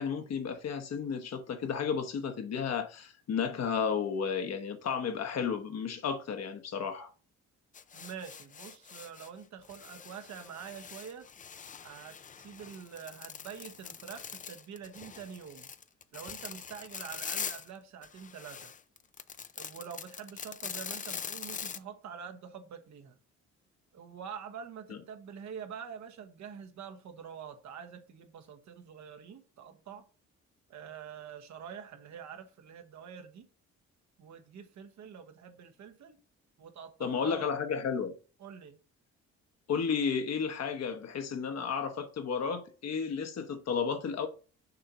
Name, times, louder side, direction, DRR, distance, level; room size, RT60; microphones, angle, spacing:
voice 1, 0.0-7.1 24.9-25.0 37.0-38.1 39.7-44.3, left 6 dB, 60° left, 1.2 m, -33 dB
sound 1, 7.7-9.3 9.6-17.7 18.0-21.8, left 7 dB, 25° left, 0.4 m, -43 dB
voice 2, 7.9-11.3 11.8-15.7 16.1-18.7 19.6-23.2 23.9-30.0 30.7-33.5 34.2-36.2 36.6-37.5 38.4-38.8, right 7 dB, 65° right, 1.2 m, -46 dB
6.6 x 2.8 x 5.5 m
cardioid pair, 90°, 30 cm